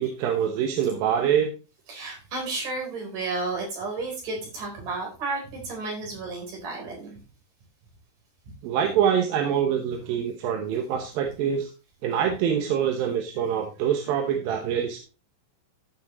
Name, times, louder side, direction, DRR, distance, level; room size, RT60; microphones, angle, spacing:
voice 1, 0.0-1.5 8.6-11.7 12.0-15.0, right 8 dB, 85° right, 3 dB, 2.9 m, -25 dB
voice 2, 1.9-7.1, right 3 dB, 65° right, -1 dB, 5.5 m, -32 dB
14.5 x 6.0 x 3.0 m, 0.33 s
omnidirectional pair, 4.0 m